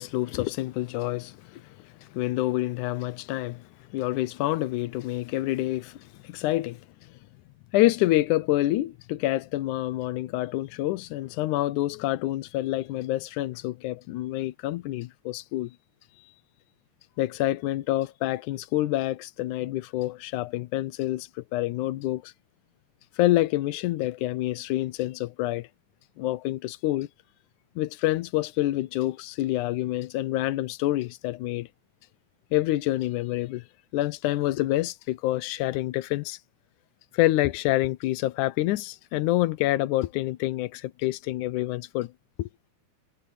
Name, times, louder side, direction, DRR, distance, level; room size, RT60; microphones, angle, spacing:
voice 1, 0.0-3.6 3.9-6.8 7.7-15.7 17.2-22.3 23.2-25.7 26.2-27.1 27.8-31.7 32.5-33.6 33.9-36.4 37.1-42.1 42.4-42.5, left 16 dB, 80° left, 2.2 m, -27 dB
omnidirectional pair, 3.7 m